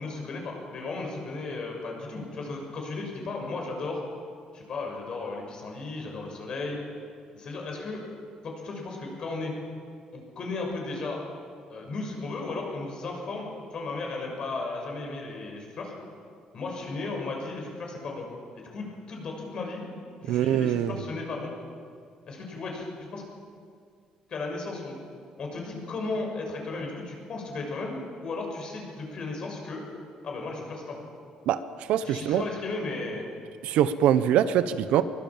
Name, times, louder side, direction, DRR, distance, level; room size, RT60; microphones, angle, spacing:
voice 1, 0.0-4.0 4.5-6.8 7.3-8.0 8.4-9.5 10.1-11.2 11.7-15.9 16.5-18.3 18.5-19.9 20.2-21.5 22.3-23.2 24.3-25.0 25.4-29.8 30.2-31.0 32.0-33.3, left 3 dB, 40° left, 1 dB, 6.7 m, -35 dB
voice 2, 20.3-21.0 31.5-31.6 31.9-32.4 33.6-35.0, right 10 dB, 80° right, 12 dB, 1.1 m, -23 dB
23.5 x 23.0 x 7.5 m, 2.2 s
cardioid pair, 165°, 2 cm